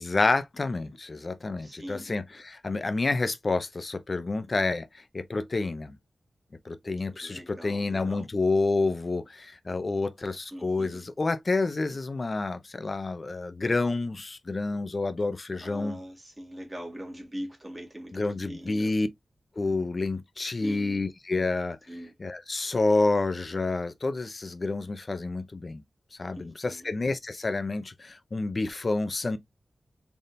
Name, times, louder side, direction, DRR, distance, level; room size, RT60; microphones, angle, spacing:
voice 1, 0.0-6.0 6.7-16.0 18.1-19.1 19.6-21.8 22.2-25.8 26.2-29.4, left 3 dB, 35° left, 0.5 m, -29 dB
voice 2, 1.6-2.1 7.2-8.3 10.5-11.1 15.6-18.9 20.6-21.1 21.9-22.1 26.3-26.9, equal, 15° right, 1.9 m, -42 dB
4.0 x 3.5 x 2.5 m
wide cardioid pair, 125°, 0 cm